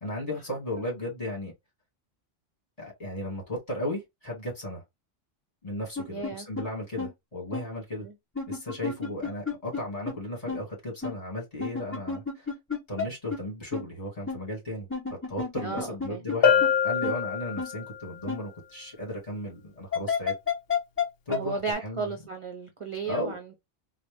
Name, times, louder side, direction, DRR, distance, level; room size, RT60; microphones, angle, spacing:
voice 1, 0.0-1.5 2.8-4.8 5.6-8.1 8.5-12.5 12.9-14.9 15.3-20.3 21.3-22.1 23.0-23.3, left 1 dB, 30° left, 2.4 m, -35 dB
sound 1, 6.0-6.3 6.6-6.7 7.0-7.1 7.5-7.6 8.4-9.8 10.1-10.2 10.5-10.6 11.0-11.1 11.6-13.1 13.3-13.4 13.7-13.8 14.3-14.4 14.9-16.3 16.6-16.7 17.0-17.1 17.6-17.7 18.3-18.4 19.9-21.1 21.3-21.4 21.7-21.8, left 5 dB, 15° left, 0.7 m, -30 dB
voice 2, 6.1-6.5 8.0-8.1 15.6-16.2 21.3-23.6, right 4 dB, 35° right, 0.6 m, -34 dB
Bell, 16.4-18.0, left 8 dB, 60° left, 0.8 m, -24 dB
4.1 x 2.2 x 3.4 m
omnidirectional pair, 1.2 m